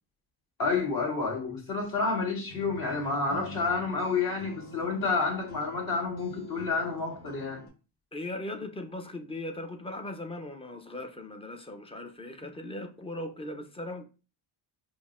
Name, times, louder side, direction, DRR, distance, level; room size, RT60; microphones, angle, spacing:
voice 1, 0.6-7.6, left 4 dB, 50° left, 1.6 m, -29 dB
sound 1, 2.5-7.7, equal, 85° left, 1.2 m, -46 dB
voice 2, 8.1-14.0, left 1 dB, 15° left, 0.4 m, -38 dB
5.2 x 2.1 x 2.4 m
supercardioid pair, 80°, 47 cm